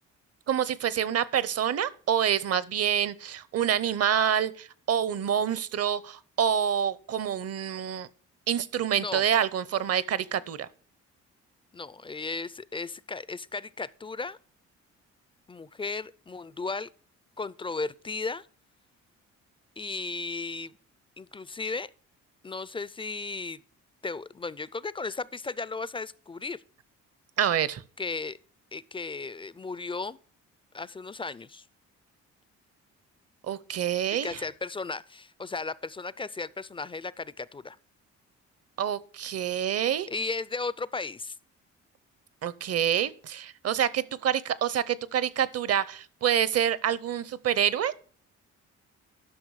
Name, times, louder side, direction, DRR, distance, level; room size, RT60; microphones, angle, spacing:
voice 1, 0.5-8.1 8.5-10.7 27.4-27.8 33.5-34.4 38.8-40.1 42.4-47.9, right 9 dB, 55° right, 0.8 m, -27 dB
voice 2, 8.9-9.2 11.7-14.4 15.5-16.9 17.4-18.5 19.8-20.7 21.2-21.9 22.4-23.6 24.0-26.6 28.0-28.4 28.7-30.2 30.7-31.6 34.1-37.8 40.1-41.4, left 3 dB, 20° left, 0.4 m, -35 dB
12.5 x 6.1 x 4.7 m
cardioid pair, 90°, 30 cm